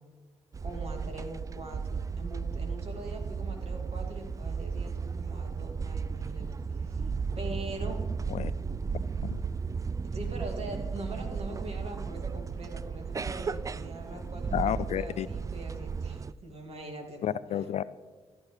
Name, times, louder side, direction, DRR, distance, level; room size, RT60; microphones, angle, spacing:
sound 1, 0.5-16.3, right 5 dB, 25° right, 0.3 m, -35 dB
voice 1, 0.6-7.0 7.3-8.0 10.0-17.4, right 2 dB, 50° right, 2 dB, 2.5 m, -42 dB
voice 2, 14.5-15.3 17.2-17.8, left 10 dB, 55° left, 17 dB, 0.4 m, -30 dB
14.0 x 9.5 x 3.3 m, 1.4 s
hypercardioid pair, 45°, 13 cm